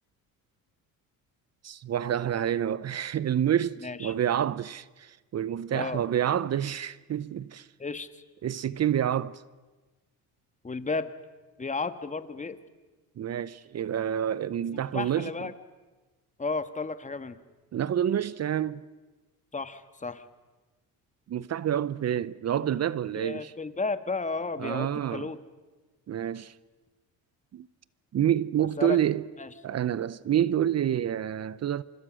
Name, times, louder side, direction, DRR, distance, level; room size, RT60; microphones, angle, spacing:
voice 1, 1.6-7.7 8.4-9.4 13.2-15.5 17.7-18.8 21.3-23.5 24.6-25.3 26.1-26.5 27.5-27.7 28.1-29.2 29.6-31.8, right 10 dB, 40° right, 0.7 m, -28 dB
voice 2, 3.8-4.1 5.7-6.0 7.8-8.1 10.6-11.1 11.6-12.6 14.9-15.5 16.4-17.4 19.5-20.2 23.1-25.4 28.8-29.0 29.4-29.5, left 4 dB, 20° left, 1.6 m, -33 dB
27.0 x 25.0 x 6.4 m
cardioid pair, 95°, 38 cm